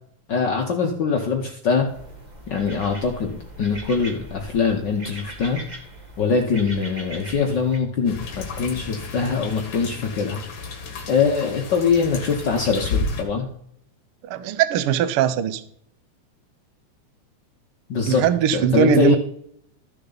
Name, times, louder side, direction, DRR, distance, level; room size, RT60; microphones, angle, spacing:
voice 1, 0.3-1.9 2.5-5.6 6.2-10.4 11.1-13.5 17.9-19.2, left 5 dB, 70° left, 3 dB, 1.0 m, -23 dB
sound 1, 1.9-7.8, right 1 dB, 55° right, 0.4 m, -40 dB
sound 2, 8.0-13.2, left 4 dB, 45° left, 2.0 m, -32 dB
voice 2, 14.3-15.6 18.1-19.2, right 8 dB, 85° right, 12 dB, 1.2 m, -20 dB
14.0 x 6.6 x 4.0 m, 0.68 s
omnidirectional pair, 3.4 m